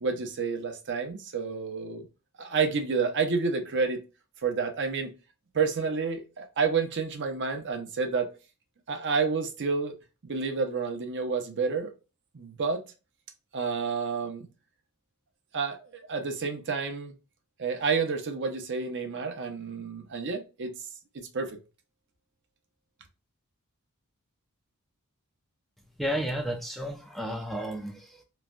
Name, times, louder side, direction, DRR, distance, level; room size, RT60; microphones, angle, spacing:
voice 1, 0.0-2.1 2.4-4.0 4.4-5.1 5.5-8.3 8.9-9.9 10.2-11.9 12.3-12.8 13.5-14.5 15.5-17.1 17.6-20.7 21.1-21.6, right 5 dB, 55° right, 0.7 m, -29 dB
voice 2, 26.0-28.2, equal, ahead, 0.4 m, -32 dB
3.1 x 2.2 x 2.4 m
head